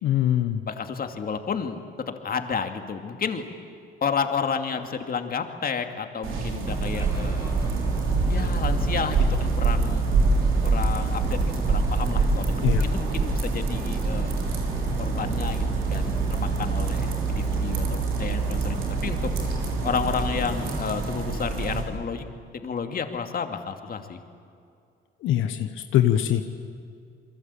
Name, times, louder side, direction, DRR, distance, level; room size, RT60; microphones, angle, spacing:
voice 1, 0.0-0.6 12.6-12.8 25.2-26.4, left 12 dB, 85° left, 7 dB, 1.2 m, -22 dB
voice 2, 0.7-3.5 4.0-7.6 8.3-10.1 10.6-14.3 15.0-19.3 19.8-22.3 22.6-24.2, left 6 dB, 50° left, 6 dB, 2.5 m, -31 dB
sound 1, 6.2-21.8, right 4 dB, 85° right, 4.8 m, -25 dB
sound 2, 6.6-20.8, right 1 dB, 15° right, 3.1 m, -36 dB
28.0 x 22.5 x 8.6 m, 2.4 s
cardioid pair, 90°, 20 cm